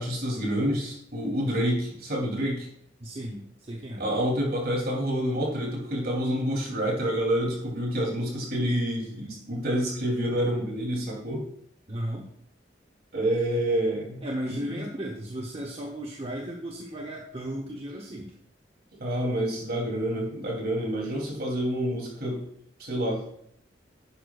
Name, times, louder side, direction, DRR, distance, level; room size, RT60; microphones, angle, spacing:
voice 1, 0.0-2.7 4.0-11.5 13.1-14.6 19.0-22.4 22.8-23.2, equal, 55° right, -1 dB, 3.2 m, -28 dB
voice 2, 3.0-4.0 11.9-12.3 14.2-18.3, right 1 dB, 35° right, 1 dB, 1.0 m, -35 dB
10.5 x 10.0 x 2.5 m, 0.68 s
head